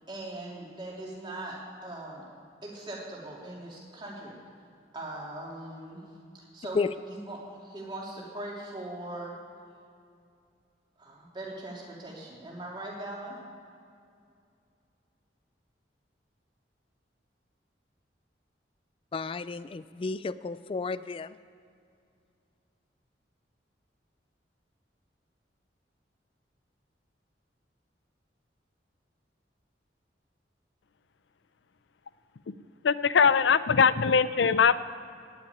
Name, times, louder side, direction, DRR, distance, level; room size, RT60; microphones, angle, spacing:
voice 1, 0.0-2.2 2.6-4.4 4.9-6.0 6.3-9.3 11.0-13.4, right 1 dB, 25° right, 3.0 m, -40 dB
voice 2, 19.1-21.3, left 4 dB, 30° left, 0.3 m, -32 dB
voice 3, 32.8-34.8, left 6 dB, 85° left, 0.5 m, -21 dB
17.5 x 5.9 x 9.6 m
head